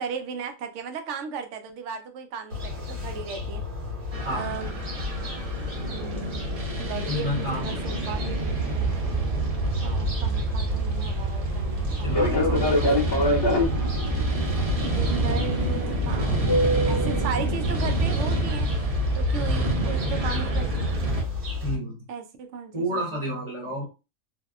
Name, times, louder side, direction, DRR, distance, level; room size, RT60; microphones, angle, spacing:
voice 1, 0.0-3.6 4.3-4.8 5.8-6.5 6.8-8.6 9.8-13.2 14.8-18.7 19.2-20.9 22.1-23.3, right 5 dB, 70° right, 6 dB, 0.8 m, -36 dB
sound 1, 2.5-21.8, left 5 dB, 90° right, 1.9 m, -33 dB
sound 2, 4.1-21.2, right 3 dB, 50° right, 0.4 m, -28 dB
voice 2, 7.1-7.8 12.0-13.1 21.6-22.0 22.7-23.8, equal, 25° right, -3 dB, 0.9 m, -30 dB
Fixed-wing aircraft airplane, 12.1-18.5, left 1 dB, 35° left, 0.4 m, -27 dB
3.4 x 2.2 x 2.3 m, 0.30 s
omnidirectional pair, 1.4 m